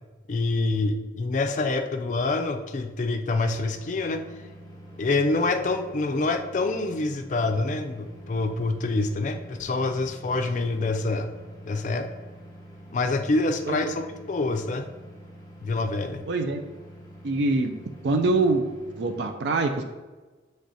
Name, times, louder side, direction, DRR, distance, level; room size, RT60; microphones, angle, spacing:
voice 1, 0.3-4.2 5.0-11.3 11.6-12.1 12.9-14.9 15.6-16.2, left 3 dB, 45° left, 6 dB, 0.4 m, -26 dB
sound 1, 3.7-19.3, equal, 20° left, 0.8 m, -46 dB
voice 2, 16.3-16.6 17.2-17.7 18.0-18.7 19.0-19.8, right 3 dB, 70° right, 5 dB, 0.4 m, -24 dB
6.2 x 3.2 x 2.6 m, 1.3 s
head